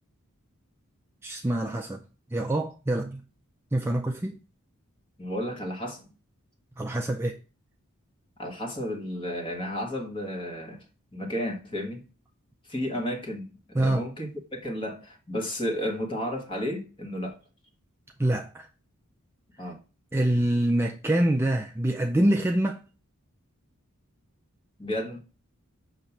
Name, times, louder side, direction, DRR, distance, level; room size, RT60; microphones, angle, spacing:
voice 1, 1.2-2.0 2.3-3.2 3.7-4.4 6.8-7.4 13.7-14.0 18.2-18.7 20.1-22.8, right 1 dB, 10° right, 0.3 m, -25 dB
voice 2, 5.2-6.0 8.4-10.8 11.1-12.0 12.7-17.3 19.6-19.8 24.8-25.2, equal, 25° left, 1.3 m, -32 dB
6.7 x 2.9 x 5.8 m
head